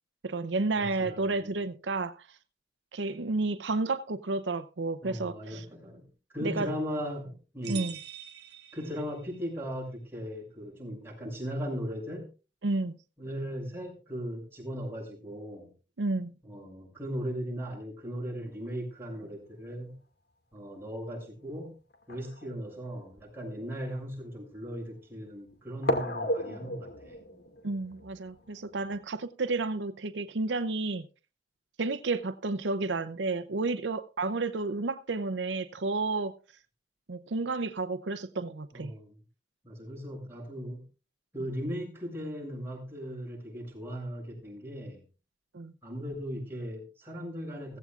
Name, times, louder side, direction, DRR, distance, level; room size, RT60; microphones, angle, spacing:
voice 1, 0.2-2.3 2.9-5.6 6.4-6.7 7.7-8.0 12.6-13.0 16.0-16.3 27.6-31.1 31.8-36.3 37.1-38.9 45.5-45.7, right 3 dB, 85° right, 0.7 m, -31 dB
voice 2, 0.8-1.5 5.0-7.9 8.7-12.3 13.2-15.7 16.4-20.0 20.5-21.8 22.1-27.2 38.7-39.1 39.6-40.8 41.3-45.0 45.8-47.8, equal, 15° right, 6.4 m, -38 dB
sound 1, 7.6-9.5, right 11 dB, 65° right, 2.0 m, -44 dB
sound 2, 20.6-20.7 21.9-23.2 24.0-24.1 25.8-29.0, equal, 65° left, 2.2 m, -35 dB
16.0 x 15.5 x 2.5 m
head